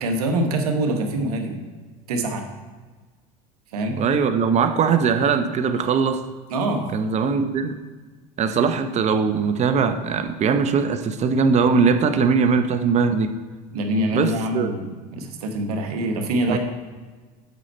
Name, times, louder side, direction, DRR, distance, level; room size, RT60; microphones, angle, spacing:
voice 1, 0.0-1.6 2.1-2.4 3.7-4.0 6.5-6.9 13.7-16.6, right 1 dB, 90° right, 4 dB, 1.2 m, -24 dB
voice 2, 4.0-6.2 6.9-7.7 8.4-13.3 14.1-14.7 16.5-16.6, right 5 dB, 35° right, 8 dB, 0.8 m, -20 dB
8.2 x 5.6 x 4.3 m, 1.4 s
supercardioid pair, 100°, 19 cm